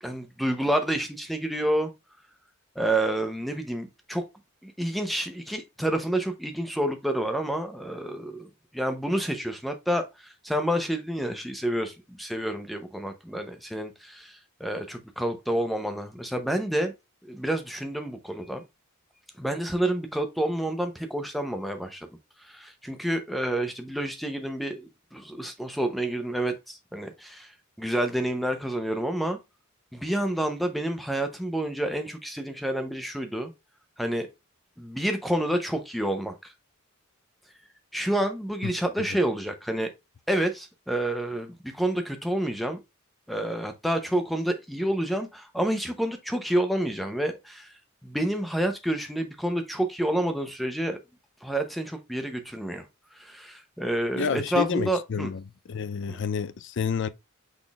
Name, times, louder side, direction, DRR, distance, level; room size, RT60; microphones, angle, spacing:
voice 1, 0.0-1.9 2.8-4.2 4.6-8.5 8.7-16.9 17.2-18.6 19.4-22.1 22.4-27.5 27.8-29.4 29.9-33.5 34.0-34.3 34.8-36.5 37.9-39.9 40.3-42.8 43.3-47.7 48.0-51.0 51.4-52.8 53.2-55.3 56.1-56.2, right 1 dB, ahead, 0.6 m, -29 dB
voice 2, 54.1-55.4 55.7-57.1, left 6 dB, 55° left, 0.4 m, -29 dB
6.1 x 3.7 x 2.3 m
head